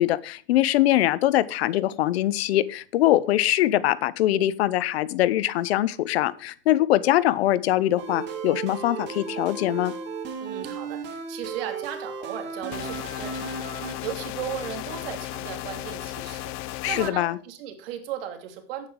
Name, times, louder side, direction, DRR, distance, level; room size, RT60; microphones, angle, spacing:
voice 1, 0.0-9.9 16.8-17.4, left 14 dB, 75° left, 18 dB, 0.9 m, -22 dB
sound 1, 8.0-13.9, right 6 dB, 35° right, 2.3 m, -35 dB
voice 2, 10.4-18.9, right 9 dB, 65° right, 6 dB, 2.9 m, -36 dB
sound 2, 12.7-17.1, left 16 dB, 40° left, 0.8 m, -35 dB
10.5 x 9.3 x 4.8 m, 0.42 s
supercardioid pair, 130°, 31 cm